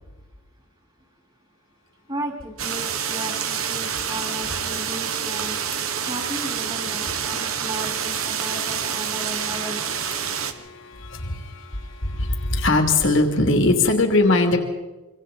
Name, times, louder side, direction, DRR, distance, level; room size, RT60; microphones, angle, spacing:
voice 1, 2.1-5.6 6.0-9.9, right 1 dB, 25° right, 1 dB, 3.8 m, -35 dB
sound 1, 2.6-10.5, right 8 dB, 90° right, 1.4 m, -27 dB
voice 2, 10.2-14.6, left 2 dB, 65° left, 3 dB, 2.8 m, -21 dB
25.5 x 25.0 x 4.2 m, 1.2 s
head